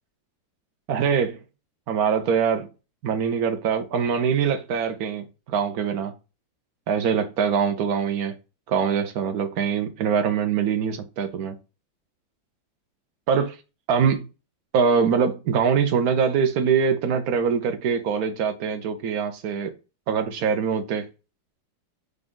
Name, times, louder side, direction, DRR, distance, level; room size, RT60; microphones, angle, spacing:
voice 1, 0.9-1.4 1.9-2.7 3.0-6.1 6.9-8.3 8.7-11.6 13.3-13.6 13.9-14.3 14.7-19.7 20.1-21.1, right 6 dB, 70° right, 0.9 m, -23 dB
5.1 x 2.3 x 3.6 m
omnidirectional pair, 2.1 m